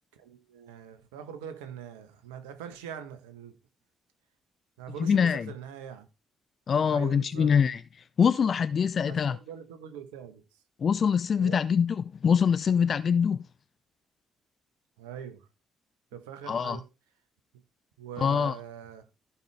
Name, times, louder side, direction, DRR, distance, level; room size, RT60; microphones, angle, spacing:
voice 1, 0.1-3.6 4.8-6.1 6.9-7.5 9.1-10.4 11.4-11.6 15.0-15.5 16.1-16.8 18.0-19.1, right 8 dB, 75° right, 1.2 m, -42 dB
voice 2, 5.0-5.5 6.7-7.8 8.2-9.4 10.8-13.4 16.5-16.8 18.2-18.6, left 7 dB, 45° left, 0.5 m, -24 dB
14.5 x 5.8 x 3.4 m
figure-of-eight pair, 45°, 0 cm